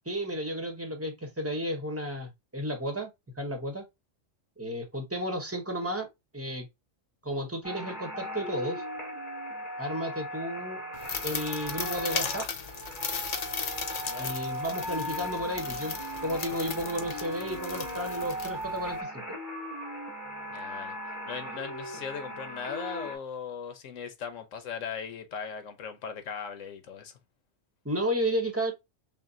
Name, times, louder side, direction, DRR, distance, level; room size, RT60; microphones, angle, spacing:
voice 1, 0.0-3.1 3.4-3.8 4.6-6.1 6.3-6.7 7.2-8.8 9.8-10.8 11.2-12.5 14.2-19.4 27.8-28.7, equal, 15° right, 0.9 m, -33 dB
sound 1, 7.6-23.2, equal, 15° left, 1.1 m, -38 dB
sound 2, 10.9-19.0, left 6 dB, 50° left, 0.5 m, -37 dB
voice 2, 20.5-21.0 21.2-27.1, left 6 dB, 90° left, 1.2 m, -38 dB
5.7 x 2.2 x 2.6 m
omnidirectional pair, 1.3 m